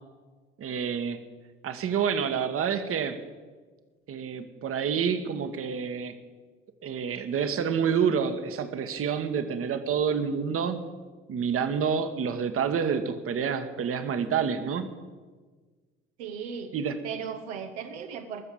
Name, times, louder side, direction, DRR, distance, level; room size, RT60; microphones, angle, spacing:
voice 1, 0.6-1.2 1.6-3.2 4.1-6.1 6.8-10.8 11.3-14.9 16.7-17.0, right 7 dB, 40° right, 9 dB, 1.2 m, -28 dB
voice 2, 16.2-16.7 17.0-18.4, right 7 dB, 70° right, 4 dB, 1.0 m, -36 dB
20.0 x 7.1 x 7.1 m, 1.4 s
figure-of-eight pair, 55°, 36 cm